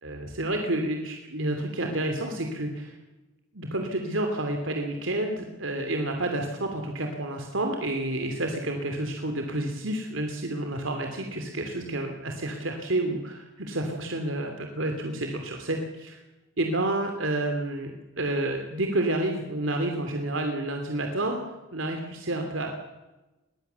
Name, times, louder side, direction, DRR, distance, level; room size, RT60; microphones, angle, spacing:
voice 1, 0.0-2.9 3.5-16.2 16.6-21.4 21.7-22.7, right 1 dB, 90° right, 4 dB, 2.9 m, -29 dB
22.0 x 19.0 x 7.0 m, 1.0 s
head